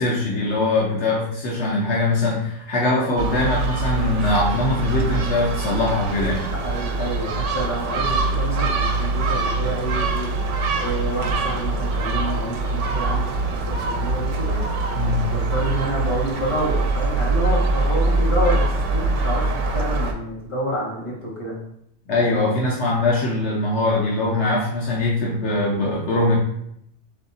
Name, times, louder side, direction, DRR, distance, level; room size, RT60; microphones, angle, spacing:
voice 1, 0.0-6.5 14.9-15.3 22.1-26.4, left 2 dB, 70° left, -3 dB, 1.0 m, -22 dB
Gull seagull, 3.2-20.1, right 3 dB, 80° right, 0.9 m, -23 dB
voice 2, 6.5-10.3 10.8-14.6 15.2-21.6, equal, 25° left, -6 dB, 1.5 m, -28 dB
3.5 x 2.7 x 4.0 m, 0.73 s
omnidirectional pair, 1.2 m